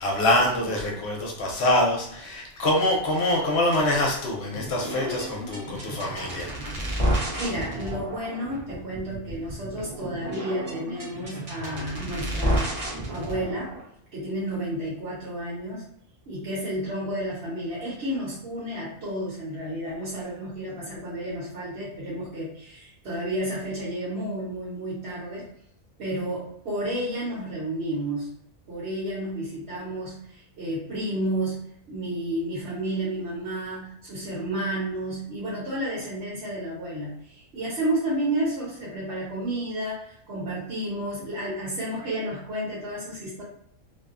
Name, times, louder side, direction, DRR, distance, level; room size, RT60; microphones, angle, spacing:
voice 1, 0.0-6.5, left 1 dB, 65° left, -1 dB, 0.8 m, -25 dB
sound 1, 4.5-13.8, equal, 40° right, 0.6 m, -31 dB
voice 2, 7.3-12.7 13.1-13.7 14.1-15.8 16.3-25.5 26.0-28.3 28.7-43.4, right 1 dB, 60° right, -8 dB, 1.1 m, -31 dB
2.6 x 2.1 x 2.4 m, 0.72 s
omnidirectional pair, 1.3 m